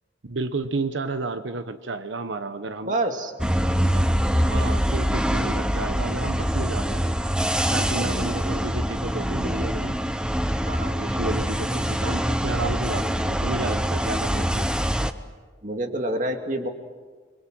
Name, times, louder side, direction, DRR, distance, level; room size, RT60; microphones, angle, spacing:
voice 1, 0.2-3.0 3.9-4.0 4.4-7.1 7.7-10.0 10.7-14.7, right 3 dB, 90° right, 9 dB, 1.1 m, -31 dB
voice 2, 2.8-3.3 7.7-8.0 10.7-10.9 15.6-16.7, right 1 dB, 45° right, 4 dB, 2.3 m, -28 dB
sound 1, 3.4-15.1, equal, 5° right, 0.8 m, -24 dB
29.5 x 24.0 x 6.3 m, 1.4 s
head